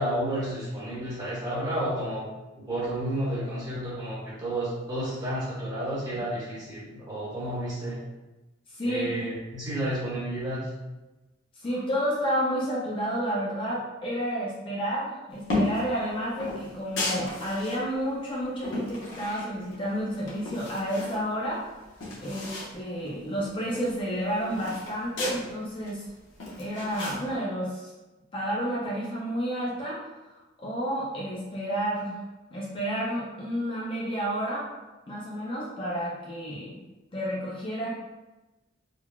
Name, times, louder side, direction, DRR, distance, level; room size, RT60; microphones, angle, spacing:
voice 1, 0.0-2.2 2.6-8.0 8.8-10.7 11.7-11.8, right 1 dB, 20° right, -9 dB, 1.2 m, -31 dB
voice 2, 8.7-9.1 11.5-21.7 22.2-26.1 26.6-27.9 28.3-32.2 32.5-34.7 35.1-36.7 37.1-37.9, equal, 25° left, -5 dB, 0.4 m, -30 dB
sound 1, 15.4-15.9 16.4-17.8 18.3-19.8 20.1-21.2 21.5-21.6 21.8-22.7 23.1-23.2 23.5-25.4 25.9-27.2, left 2 dB, 70° left, 0.8 m, -33 dB
3.6 x 2.3 x 2.3 m, 1.1 s
head